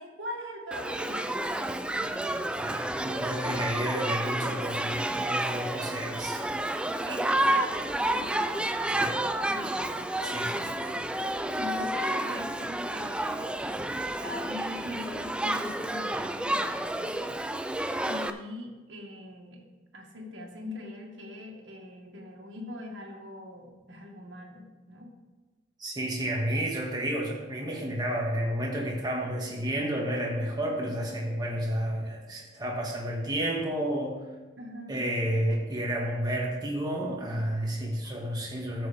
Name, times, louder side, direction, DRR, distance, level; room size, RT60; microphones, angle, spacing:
voice 1, 0.0-3.2 7.1-10.1 10.4-10.8 11.5-13.5 14.2-17.2 18.0-19.6 19.9-25.1 34.6-35.0, left 1 dB, 70° right, -1 dB, 2.0 m, -42 dB
Shout / Human group actions, 0.7-18.3, right 1 dB, 5° right, 0.3 m, -30 dB
voice 2, 2.6-6.5 8.9-9.1 10.2-10.7 25.8-34.2 34.9-38.9, right 1 dB, 20° right, -2 dB, 1.9 m, -31 dB
13.0 x 7.8 x 3.5 m, 1.2 s
head